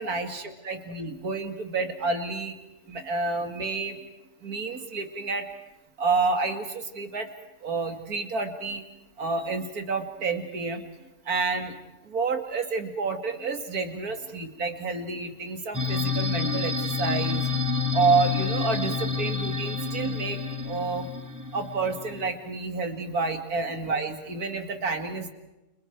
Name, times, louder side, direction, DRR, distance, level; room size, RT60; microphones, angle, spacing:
voice 1, 0.0-2.6 2.9-4.0 4.4-5.5 6.0-7.3 7.6-8.8 9.2-10.8 11.3-11.8 12.1-17.4 17.9-20.4 20.6-21.1 21.5-25.3, right 4 dB, 65° right, 7 dB, 2.8 m, -29 dB
sound 1, 15.7-22.3, left 5 dB, 10° right, 2.1 m, -29 dB
30.0 x 29.5 x 4.7 m, 1.0 s
omnidirectional pair, 1.7 m